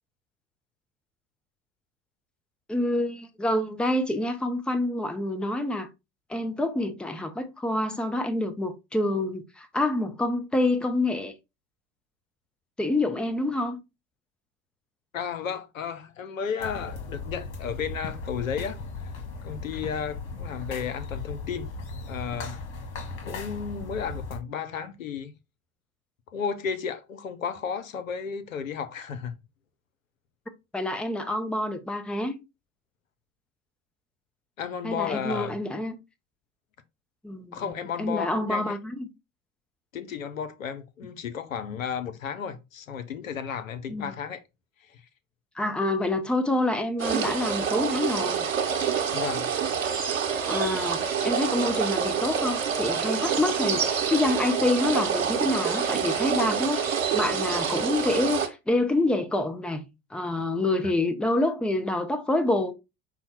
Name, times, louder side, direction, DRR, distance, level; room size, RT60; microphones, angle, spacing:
voice 1, 2.7-5.9 6.3-11.3 12.8-13.8 30.7-32.4 34.8-36.0 37.2-37.6 38.0-39.1 43.9-44.1 45.6-48.5 50.4-59.8 60.1-62.7, left 2 dB, 5° left, 0.6 m, -27 dB
voice 2, 15.1-19.1 19.4-21.8 22.1-22.7 23.2-25.3 26.3-29.3 34.6-35.6 37.5-38.8 39.9-44.4 44.8-45.0 49.1-49.5, left 7 dB, 85° left, 0.7 m, -33 dB
sound 1, 16.6-24.4, left 3 dB, 65° left, 1.4 m, -37 dB
sound 2, 47.0-58.5, right 7 dB, 85° right, 1.0 m, -27 dB
5.5 x 2.2 x 4.2 m
figure-of-eight pair, 75°, 39 cm